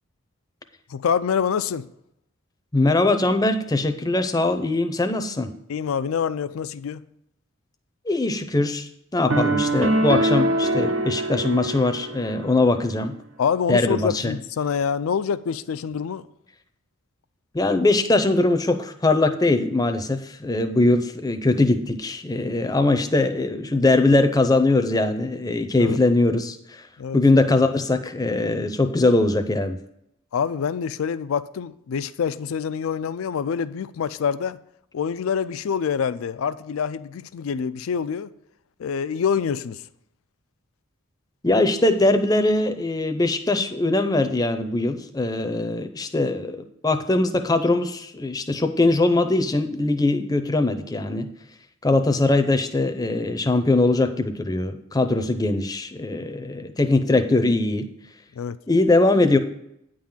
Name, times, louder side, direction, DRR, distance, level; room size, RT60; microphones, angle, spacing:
voice 1, 0.9-1.9 5.7-7.0 13.4-16.2 25.8-26.0 27.0-27.2 30.3-34.6 34.9-38.3 38.8-39.8 58.4-58.6, left 7 dB, 85° left, 0.4 m, -26 dB
voice 2, 2.7-5.5 8.1-13.2 13.7-14.3 17.5-26.8 27.1-29.8 41.4-51.3 51.8-57.9 58.7-59.4, left 2 dB, 20° left, 0.5 m, -21 dB
sound 1, 9.3-12.5, right 1 dB, 70° right, 0.7 m, -23 dB
9.4 x 3.8 x 7.2 m
head